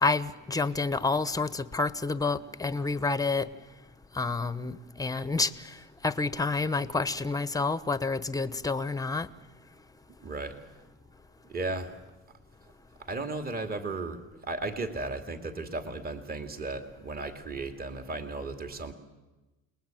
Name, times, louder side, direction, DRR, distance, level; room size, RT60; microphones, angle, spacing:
voice 1, 0.0-3.5 4.1-5.5 6.0-9.3, left 3 dB, 10° left, 14 dB, 1.1 m, -29 dB
voice 2, 10.2-10.6 11.5-12.0 13.0-18.9, right 3 dB, 25° right, 7 dB, 2.6 m, -35 dB
29.0 x 20.5 x 9.2 m, 1.1 s
cardioid pair, 130°, 34 cm